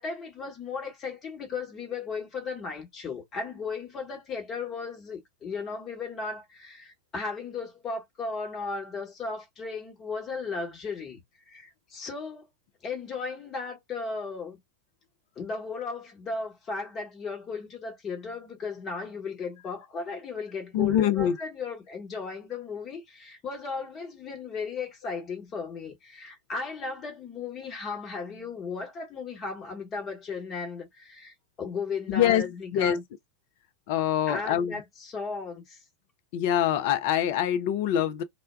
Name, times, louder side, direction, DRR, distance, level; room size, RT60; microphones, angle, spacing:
voice 1, 0.0-12.5 12.8-14.6 15.4-33.0 34.3-35.8, left 4 dB, 25° left, 1.1 m, -36 dB
voice 2, 20.7-21.4 32.1-33.0 33.9-34.8 36.3-38.2, left 10 dB, 50° left, 0.4 m, -24 dB
2.2 x 2.1 x 3.2 m
figure-of-eight pair, 90°, 0 cm